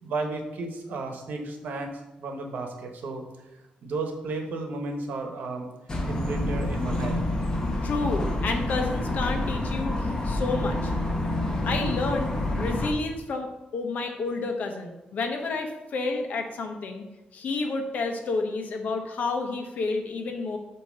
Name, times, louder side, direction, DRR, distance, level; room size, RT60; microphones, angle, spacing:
voice 1, 0.0-1.9 2.2-3.2 3.8-5.7 6.1-7.3, right 3 dB, 70° right, 3 dB, 1.2 m, -33 dB
sound 1, 5.9-12.9, left 1 dB, 25° left, 1.0 m, -28 dB
voice 2, 7.8-10.9 11.6-12.3 12.6-17.0 17.3-20.6, left 3 dB, 60° left, 4 dB, 1.0 m, -30 dB
8.6 x 3.0 x 6.3 m, 1.0 s
wide cardioid pair, 160°, 3 cm